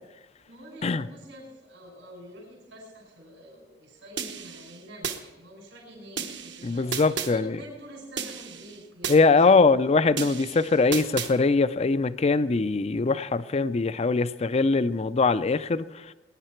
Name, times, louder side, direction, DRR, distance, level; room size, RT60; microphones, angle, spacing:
voice 1, 0.4-9.8, equal, 85° right, -3 dB, 5.4 m, -47 dB
sound 1, 4.2-5.2 6.2-7.3 8.2-9.2 10.2-11.3, right 7 dB, 65° right, 1.2 m, -34 dB
voice 2, 6.6-7.6 9.1-16.1, left 4 dB, 35° left, 15 dB, 0.5 m, -22 dB
21.5 x 10.5 x 4.5 m, 1.1 s
head